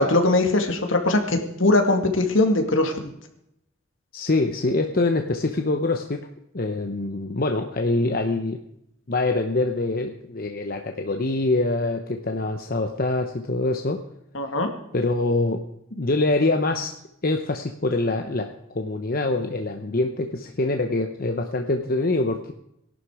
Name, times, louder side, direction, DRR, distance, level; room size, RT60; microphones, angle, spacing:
voice 1, 0.0-2.9 14.3-14.7, left 2 dB, 70° left, 5 dB, 2.1 m, -20 dB
voice 2, 4.1-6.3 6.5-8.6 9.1-14.0 14.9-15.6 15.9-16.9 17.2-22.5, left 2 dB, 45° left, 5 dB, 0.9 m, -24 dB
18.0 x 11.5 x 4.9 m, 0.77 s
head